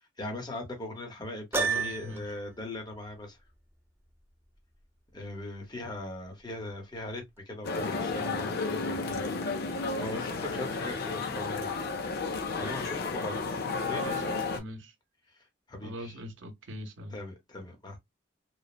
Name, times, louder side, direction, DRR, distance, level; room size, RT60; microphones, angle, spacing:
voice 1, 0.2-3.4 5.1-11.8 12.6-14.0 15.7-16.2 17.1-18.0, left 1 dB, 20° left, 0.8 m, -40 dB
Piano, 1.5-2.4, right 5 dB, 10° right, 0.3 m, -29 dB
voice 2, 1.6-2.3 13.9-14.9 15.8-17.2, equal, 85° right, 0.7 m, -42 dB
sound 1, 7.6-14.6, left 3 dB, 55° left, 0.5 m, -32 dB
3.1 x 2.0 x 2.3 m
head